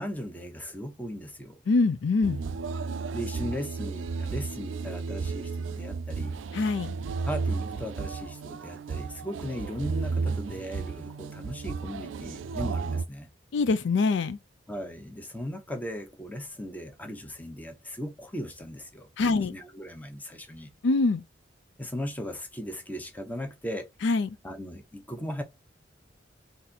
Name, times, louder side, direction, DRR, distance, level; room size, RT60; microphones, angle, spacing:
voice 1, 0.0-1.6 3.1-6.4 7.3-13.3 14.7-20.7 21.8-23.9 24.4-25.4, equal, 10° left, 0.8 m, -37 dB
voice 2, 1.7-2.4 6.5-6.9 13.5-14.4 19.2-19.5 20.8-21.2 24.0-24.3, left 3 dB, 70° left, 0.4 m, -24 dB
sound 1, 2.2-13.1, right 4 dB, 85° right, 0.4 m, -33 dB
4.1 x 2.6 x 4.1 m
head